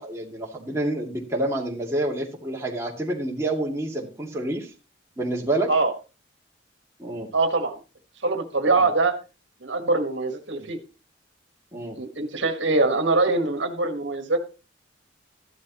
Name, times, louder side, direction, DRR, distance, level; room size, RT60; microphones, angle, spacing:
voice 1, 0.0-4.7 5.2-5.7 7.0-7.3 8.8-8.9 10.6-10.7 11.7-12.0, right 1 dB, 15° right, -1 dB, 2.3 m, -28 dB
voice 2, 7.3-7.8 8.2-9.1 9.6-10.8 11.9-14.4, right 3 dB, 70° right, 6 dB, 1.5 m, -23 dB
13.5 x 11.5 x 3.0 m, 0.32 s
head